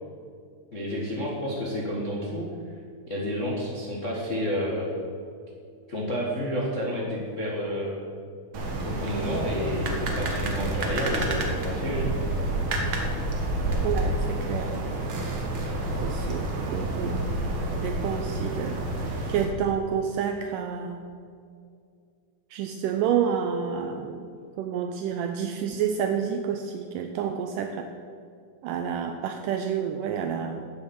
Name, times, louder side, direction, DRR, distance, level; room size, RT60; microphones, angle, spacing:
voice 1, 0.7-2.5 3.1-4.9 5.9-8.0 8.8-12.1, equal, 55° left, -5 dB, 0.8 m, -30 dB
sound 1, 8.5-19.4, right 1 dB, 55° right, 1.4 m, -29 dB
voice 2, 13.8-15.0 16.0-17.2 17.7-18.8 19.3-21.1 22.5-24.3 24.6-27.9 28.6-30.6, right 8 dB, 85° right, 5 dB, 1.9 m, -29 dB
10.5 x 8.1 x 7.9 m, 2.3 s
omnidirectional pair, 4.3 m